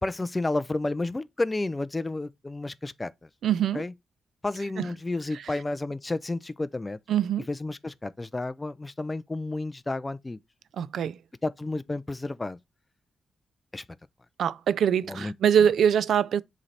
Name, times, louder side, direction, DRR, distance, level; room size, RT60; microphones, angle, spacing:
voice 1, 0.0-3.1 3.7-3.9 4.4-7.0 7.5-10.4 11.4-12.6 13.7-13.8 15.1-15.3, left 2 dB, 20° left, 0.4 m, -31 dB
voice 2, 3.4-3.8 4.8-4.9 7.1-7.5 10.8-11.2 14.4-16.4, right 8 dB, 80° right, 0.3 m, -23 dB
7.6 x 3.2 x 4.1 m
wide cardioid pair, 125°, 0 cm